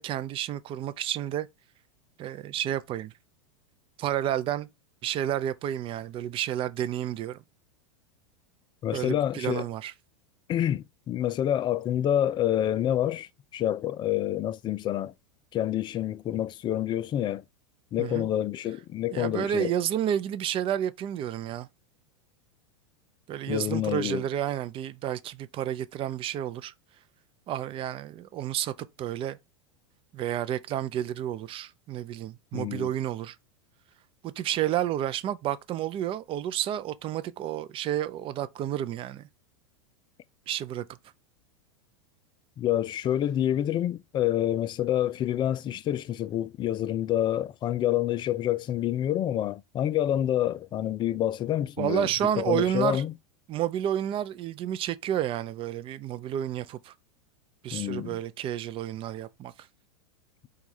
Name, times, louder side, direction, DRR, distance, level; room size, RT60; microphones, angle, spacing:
voice 1, 0.0-1.5 2.2-3.1 4.0-4.7 5.0-7.4 8.9-9.9 18.0-18.3 19.1-21.7 23.3-26.7 27.5-28.7 29.0-29.4 30.1-33.4 34.2-39.3 40.5-40.8 51.8-53.0 53.5-56.9 57.6-59.5, right 11 dB, 35° right, 0.5 m, -30 dB
voice 2, 8.8-9.6 10.5-15.1 15.5-17.4 17.9-19.7 23.5-24.2 32.5-32.9 42.6-52.1 52.4-53.1 57.7-58.2, left 11 dB, 30° left, 0.4 m, -27 dB
4.6 x 2.4 x 4.1 m
hypercardioid pair, 100°, 16 cm